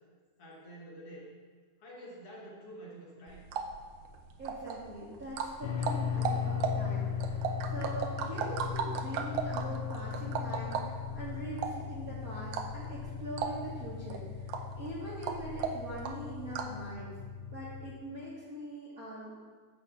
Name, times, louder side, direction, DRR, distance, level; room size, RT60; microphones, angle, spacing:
voice 1, 0.4-1.3 1.8-3.5, right 1 dB, 60° left, -4 dB, 2.0 m, -48 dB
sound 1, 3.3-16.9, right 6 dB, 80° right, 1.6 m, -38 dB
voice 2, 4.4-17.1 17.5-19.4, right 1 dB, 45° right, -8 dB, 1.2 m, -43 dB
sound 2, 5.6-17.9, left 7 dB, 90° left, 1.4 m, -37 dB
9.6 x 3.5 x 6.9 m, 1.5 s
omnidirectional pair, 3.4 m